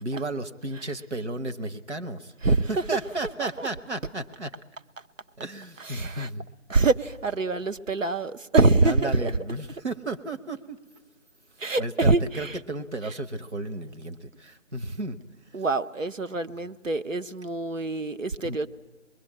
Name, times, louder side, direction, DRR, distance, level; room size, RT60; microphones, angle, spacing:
voice 1, 0.0-4.5 5.4-6.5 8.8-10.8 11.8-15.2 18.4-18.6, right 2 dB, 60° right, 7 dB, 1.3 m, -33 dB
voice 2, 2.4-3.0 3.4-3.7 5.8-6.3 6.7-9.3 11.6-12.6 13.0-13.1 15.5-18.7, right 3 dB, 80° right, 10 dB, 1.0 m, -25 dB
25.0 x 22.0 x 8.7 m, 1.2 s
figure-of-eight pair, 165°, 38 cm